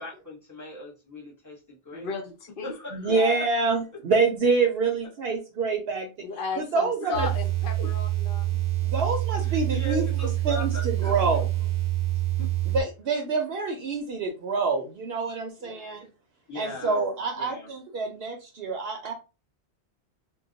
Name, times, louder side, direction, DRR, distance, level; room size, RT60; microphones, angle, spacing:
voice 1, 0.0-2.1 2.6-3.5 7.0-7.3 7.8-7.9 9.4-11.4 12.4-12.5 16.5-17.0 17.4-17.7, left 1 dB, 15° left, 1.0 m, -40 dB
voice 2, 1.9-2.8 3.1-3.4 6.2-8.6 15.6-15.9, left 4 dB, 60° left, 0.7 m, -35 dB
voice 3, 2.9-6.1 6.6-7.3 8.8-11.5 12.7-16.1 16.6-19.1, right 4 dB, 70° right, 0.8 m, -26 dB
sound 1, 7.1-12.8, right 15 dB, 30° right, 0.4 m, -26 dB
2.2 x 2.2 x 3.9 m
omnidirectional pair, 1.1 m